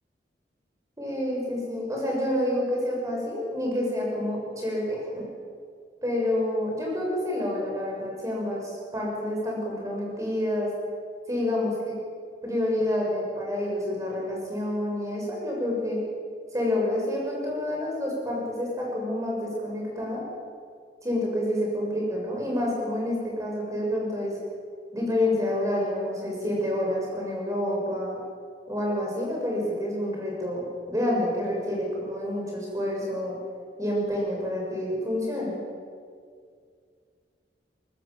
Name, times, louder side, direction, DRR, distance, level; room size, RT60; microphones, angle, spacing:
voice 1, 1.0-5.2 6.0-10.7 11.3-11.9 12.4-16.0 16.5-20.2 21.0-24.3 24.9-28.2 28.7-33.4 33.8-35.6, left 1 dB, 20° right, -2 dB, 6.9 m, -28 dB
23.0 x 19.5 x 7.4 m, 2.1 s
head